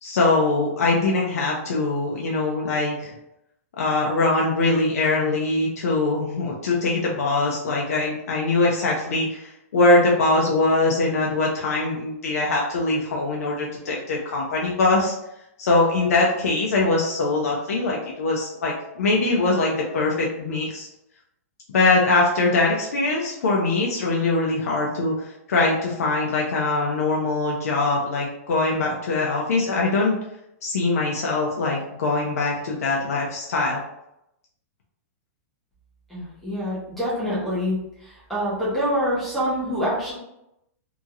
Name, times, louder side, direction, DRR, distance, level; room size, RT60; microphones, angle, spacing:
voice 1, 0.0-3.1 3.8-15.1 15.6-20.9 21.7-30.2 30.6-33.8, left 3 dB, 80° left, -2 dB, 0.6 m, -22 dB
voice 2, 36.1-37.7 38.0-40.1, equal, ahead, -10 dB, 0.7 m, -26 dB
2.8 x 2.7 x 2.4 m, 0.83 s
supercardioid pair, 180°, 8 cm